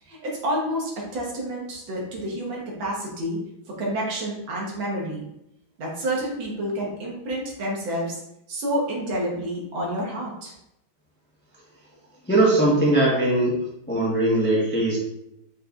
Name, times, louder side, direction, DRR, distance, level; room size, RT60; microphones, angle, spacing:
voice 1, 0.1-3.4 3.7-5.2 5.8-8.2 8.5-10.5, equal, 75° right, -3 dB, 1.9 m, -29 dB
voice 2, 12.2-13.6 13.9-15.0, right 1 dB, 10° left, -6 dB, 0.6 m, -20 dB
6.4 x 3.2 x 2.4 m, 0.84 s
omnidirectional pair, 2.2 m